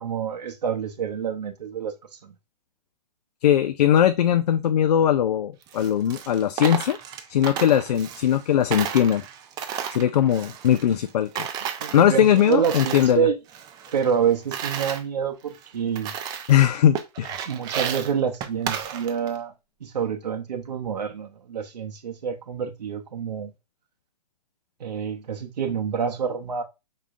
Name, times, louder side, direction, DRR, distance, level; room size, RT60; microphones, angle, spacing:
voice 1, 0.0-2.3 11.8-13.3 13.9-16.1 17.5-19.5 19.8-23.5 24.8-26.6, right 7 dB, 85° right, 0.8 m, -27 dB
voice 2, 3.4-7.0 7.3-9.2 9.9-11.5 11.9-13.3 16.5-17.4, left 10 dB, 75° left, 0.4 m, -20 dB
Coin (dropping), 5.6-8.4 8.7-11.1 11.4-13.2 13.5-15.0 15.5-15.6 16.0-16.6 16.9-19.4, right 8 dB, 20° right, 0.5 m, -33 dB
5.0 x 3.7 x 2.4 m
hypercardioid pair, 135°, 21 cm